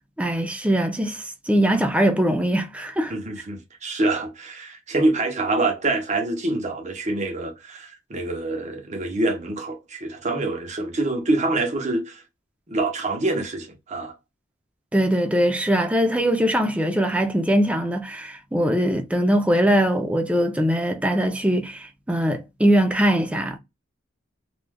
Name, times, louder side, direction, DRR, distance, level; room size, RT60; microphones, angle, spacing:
voice 1, 0.2-3.1 14.9-23.6, equal, 5° right, 0.4 m, -21 dB
voice 2, 3.1-12.2 12.7-14.1, right 2 dB, 35° right, 0.8 m, -26 dB
3.3 x 2.4 x 2.2 m
head